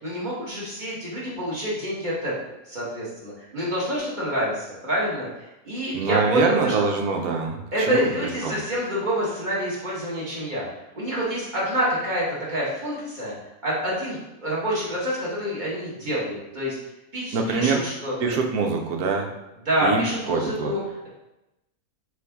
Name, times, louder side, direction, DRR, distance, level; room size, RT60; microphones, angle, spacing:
voice 1, 0.0-2.3 2.7-5.3 5.6-7.0 7.7-10.6 10.9-13.3 13.6-16.8 17.1-18.3 19.6-21.1, equal, 30° right, -8 dB, 1.4 m, -27 dB
voice 2, 5.9-8.0 8.4-8.6 17.3-17.8 18.2-19.3 19.8-20.7, right 4 dB, 75° right, 2 dB, 1.1 m, -24 dB
4.8 x 2.6 x 3.4 m, 0.95 s
omnidirectional pair, 1.7 m